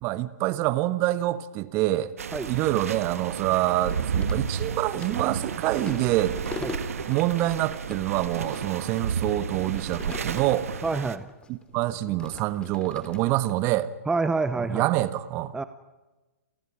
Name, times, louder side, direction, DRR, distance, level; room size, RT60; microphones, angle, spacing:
voice 1, 0.0-2.1 2.5-6.4 7.1-10.7 11.5-13.9 14.6-15.5, right 15 dB, 35° right, 1.3 m, -26 dB
sound 1, 2.2-11.2, right 6 dB, 70° right, 1.5 m, -32 dB
sound 2, 3.3-10.9 11.2-13.5, left 4 dB, 10° left, 2.5 m, -43 dB
voice 2, 10.8-11.3 14.1-14.9 15.5-15.6, right 3 dB, 10° right, 0.8 m, -27 dB
30.0 x 28.5 x 5.0 m
figure-of-eight pair, 120°, 8 cm